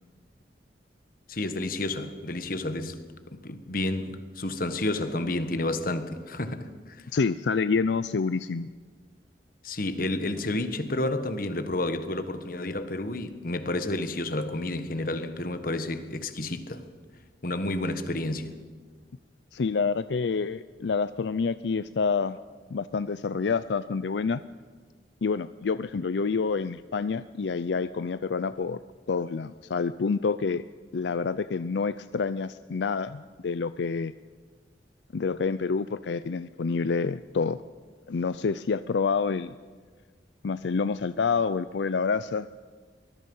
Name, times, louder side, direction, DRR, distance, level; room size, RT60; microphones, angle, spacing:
voice 1, 1.3-7.1 9.6-16.9 17.4-18.5, left 2 dB, 55° left, 1.4 m, -30 dB
voice 2, 7.1-8.7 19.5-22.4 22.7-24.4 25.2-28.8 29.1-30.6 30.9-34.1 35.1-37.6 38.1-39.5 40.4-42.5, left 5 dB, 85° left, 0.5 m, -28 dB
24.0 x 20.0 x 5.5 m
head